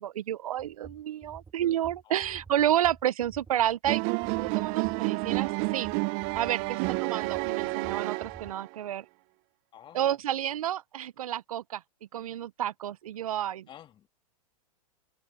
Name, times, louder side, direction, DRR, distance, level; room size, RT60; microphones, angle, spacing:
voice 1, 0.0-4.0 4.4-5.9 6.3-9.0 9.9-11.8 12.1-13.7, right 11 dB, 80° right, 0.6 m, -30 dB
sound 1, 0.6-8.5, right 5 dB, 15° right, 1.8 m, -50 dB
voice 2, 2.0-2.5 6.7-6.8 9.7-10.2 13.7-14.1, left 10 dB, 25° left, 2.3 m, -51 dB
sound 2, 3.9-8.8, right 28 dB, 45° right, 0.7 m, -30 dB
hypercardioid pair, 110°, 18 cm